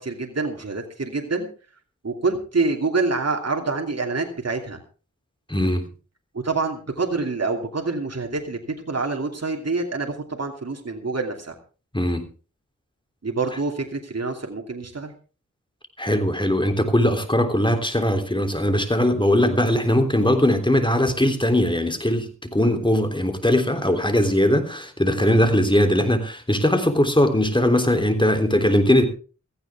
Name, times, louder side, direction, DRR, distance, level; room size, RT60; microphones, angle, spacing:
voice 1, 0.0-1.5 2.0-4.8 6.3-8.6 8.9-11.5 13.2-15.1 25.1-25.5, right 3 dB, 55° right, 2 dB, 2.8 m, -26 dB
voice 2, 5.5-5.9 11.9-12.3 16.0-29.0, left 1 dB, 15° left, 6 dB, 3.3 m, -20 dB
16.5 x 15.5 x 3.6 m, 0.36 s
wide cardioid pair, 60°, 30 cm